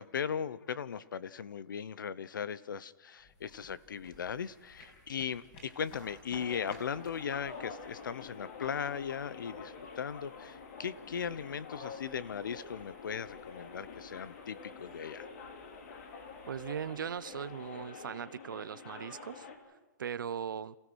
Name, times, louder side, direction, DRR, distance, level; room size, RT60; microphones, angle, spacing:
voice 1, 0.0-15.3, left 7 dB, 85° left, 0.9 m, -38 dB
sound 1, 3.2-18.3, left 2 dB, 30° left, 5.6 m, -59 dB
sound 2, 6.3-19.6, left 5 dB, 50° left, 2.6 m, -47 dB
voice 2, 16.5-19.5 20.0-20.8, right 8 dB, 90° right, 0.8 m, -39 dB
27.5 x 16.0 x 6.3 m
hypercardioid pair, 165°, 11 cm